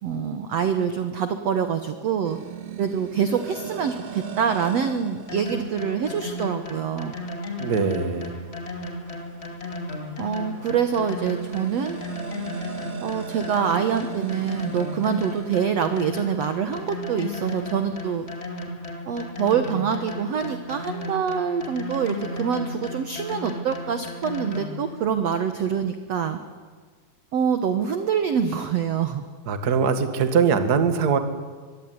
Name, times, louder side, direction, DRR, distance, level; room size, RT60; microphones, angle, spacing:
voice 1, 0.0-2.4 2.8-7.1 10.2-12.0 13.0-18.3 19.1-26.4 27.3-29.2, right 7 dB, 65° right, 8 dB, 1.6 m, -25 dB
sound 1, 2.2-18.4, right 9 dB, 90° right, 4.5 m, -41 dB
sound 2, 5.3-24.9, left 2 dB, 20° left, 1.9 m, -34 dB
voice 2, 7.6-8.4 29.5-31.2, right 6 dB, 40° right, 8 dB, 1.5 m, -22 dB
24.5 x 23.0 x 9.7 m, 1.5 s
omnidirectional pair, 4.7 m